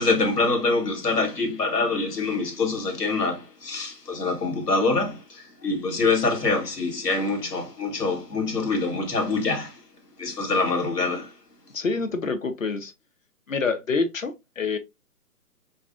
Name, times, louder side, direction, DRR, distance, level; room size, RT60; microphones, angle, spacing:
voice 1, 0.0-9.7 10.2-11.3, left 3 dB, 75° left, 1.3 m, -25 dB
voice 2, 11.7-12.9 13.5-14.8, left 4 dB, 55° left, 0.6 m, -27 dB
4.1 x 2.5 x 2.4 m
hypercardioid pair, 175°, 48 cm